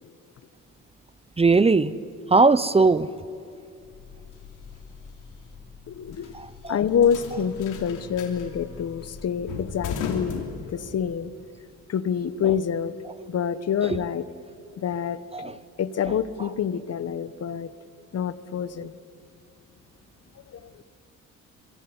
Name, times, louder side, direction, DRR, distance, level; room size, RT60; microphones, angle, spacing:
voice 1, 1.4-1.9 2.3-3.1 6.3-6.8 15.3-15.5, right 3 dB, 20° right, 17 dB, 0.7 m, -19 dB
sound 1, 3.8-11.2, left 6 dB, 90° left, 3.4 m, -38 dB
voice 2, 5.9-6.3 6.7-11.3 11.9-12.9 13.3-14.3 14.8-17.7 18.1-18.9 20.5-20.8, left 8 dB, 55° left, 15 dB, 1.3 m, -27 dB
25.0 x 22.5 x 9.8 m, 2.5 s
cardioid pair, 90°, 30 cm